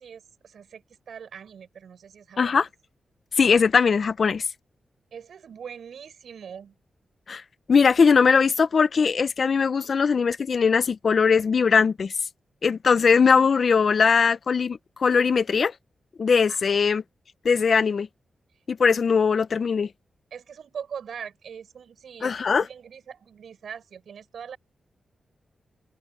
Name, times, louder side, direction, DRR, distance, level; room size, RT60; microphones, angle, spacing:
voice 1, 0.0-2.7 5.1-6.7 16.5-16.8 19.3-19.4 20.3-24.6, right 7 dB, 80° right, 7.4 m, -42 dB
voice 2, 2.4-2.7 3.4-4.4 7.3-7.4 7.7-12.1 12.6-15.7 16.2-17.0 17.4-18.1 18.7-19.9 22.2-22.7, left 5 dB, 55° left, 0.7 m, -20 dB
wide cardioid pair, 105°, 0 cm